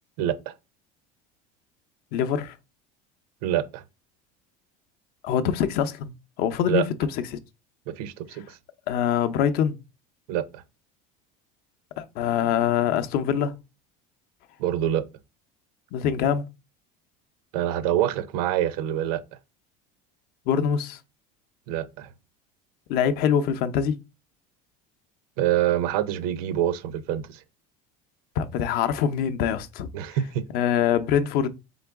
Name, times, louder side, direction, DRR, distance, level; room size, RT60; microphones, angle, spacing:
voice 1, 0.2-0.5 3.4-3.8 6.7-6.8 7.9-8.6 10.3-10.6 14.6-15.0 17.5-19.2 21.7-22.1 25.4-27.4 29.9-30.4, right 11 dB, 80° right, 0.6 m, -26 dB
voice 2, 2.1-2.6 5.2-7.0 7.3-7.4 8.9-9.8 12.0-13.5 15.9-16.4 20.5-21.0 22.9-24.0 28.4-29.9 30.5-31.5, left 8 dB, 55° left, 0.6 m, -24 dB
3.9 x 3.7 x 3.4 m
cardioid pair, 135°, 19 cm